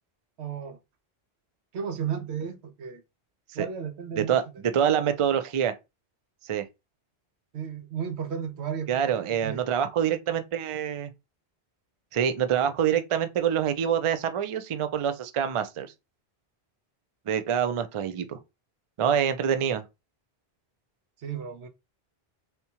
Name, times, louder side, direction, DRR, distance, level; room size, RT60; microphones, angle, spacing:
voice 1, 0.4-0.8 1.7-3.0 3.5-4.4 7.5-9.6 21.2-21.7, right 7 dB, 90° right, 1.0 m, -34 dB
voice 2, 4.2-5.7 6.5-6.7 8.9-11.1 12.1-15.9 17.3-18.4 19.0-19.8, right 8 dB, 55° right, 0.3 m, -26 dB
3.5 x 2.9 x 2.8 m
omnidirectional pair, 1.1 m